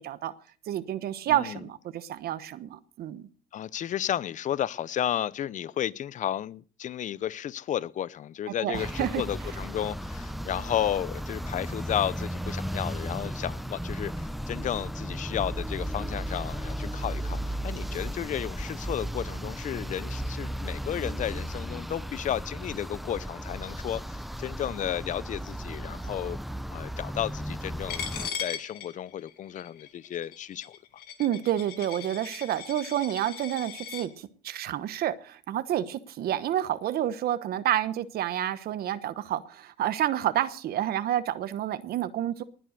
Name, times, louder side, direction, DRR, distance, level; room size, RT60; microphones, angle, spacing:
voice 1, 0.7-3.3 8.6-9.2 31.2-42.4, right 11 dB, 65° right, 1.1 m, -29 dB
voice 2, 1.3-1.6 3.5-26.4 26.7-28.1 28.4-30.8, left 10 dB, 50° left, 0.6 m, -33 dB
sound 1, 8.7-28.3, equal, ahead, 0.6 m, -35 dB
Coin (dropping), 27.9-34.1, left 8 dB, 65° left, 2.5 m, -39 dB
20.0 x 7.7 x 6.7 m
cardioid pair, 110°, 17 cm